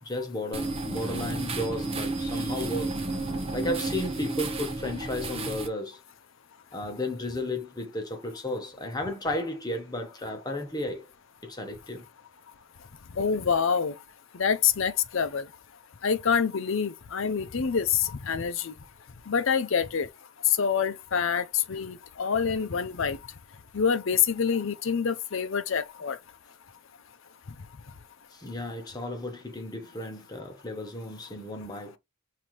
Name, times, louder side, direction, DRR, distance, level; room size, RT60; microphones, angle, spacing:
voice 1, 0.0-3.0 3.5-6.0 6.7-11.1 11.4-12.1 15.2-15.3 28.3-32.0, left 1 dB, 20° left, 1.1 m, -33 dB
sound 1, 0.5-5.7, right 2 dB, 25° right, 0.9 m, -32 dB
voice 2, 13.2-13.9 14.3-15.5 16.0-18.7 19.3-20.1 20.5-23.2 23.7-26.2, left 7 dB, 60° left, 0.6 m, -26 dB
5.6 x 2.8 x 3.1 m
head